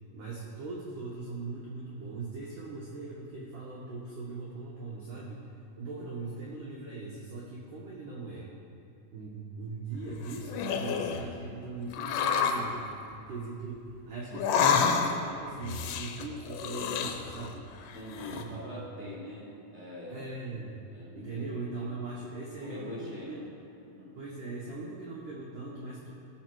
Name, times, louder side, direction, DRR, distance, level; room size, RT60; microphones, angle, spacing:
voice 1, 0.1-8.5 9.1-17.7 18.3-18.5 18.9-19.0 20.1-20.8 21.1-23.4 24.1-26.1, right 3 dB, 75° right, -4 dB, 1.9 m, -40 dB
sound 1, 10.1-11.3 11.9-12.7 14.3-15.3 15.6-17.5 17.9-18.4, left 6 dB, 80° left, 2.6 m, -29 dB
voice 2, 17.9-20.3 20.9-21.6 22.6-23.4 23.9-24.1, left 1 dB, 10° right, -8 dB, 1.5 m, -43 dB
15.0 x 5.9 x 4.5 m, 2.6 s
omnidirectional pair, 5.1 m